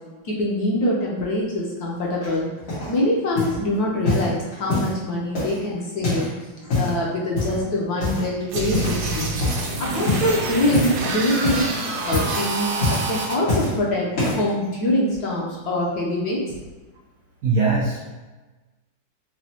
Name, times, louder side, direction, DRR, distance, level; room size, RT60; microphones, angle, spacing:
voice 1, 0.2-2.5 2.9-6.3 6.7-9.3 9.8-11.7 12.1-16.6, left 1 dB, 65° left, -4 dB, 1.1 m, -24 dB
sound 1, 2.2-3.0 3.4-3.6 4.0-5.0 5.3-6.3 6.6-7.0 7.3-7.7 8.0-8.4 8.7-9.1 9.3-9.7 10.1-11.1 11.3-11.7 12.0-12.4 12.8-13.8 14.1-14.5 15.2-15.3, left 2 dB, 85° left, 2.4 m, -25 dB
sound 2, 8.5-13.4, right 3 dB, 65° right, 1.1 m, -27 dB
voice 2, 17.4-18.1, right 3 dB, 85° right, -3 dB, 0.7 m, -21 dB
6.1 x 2.2 x 2.8 m, 1.2 s
omnidirectional pair, 2.2 m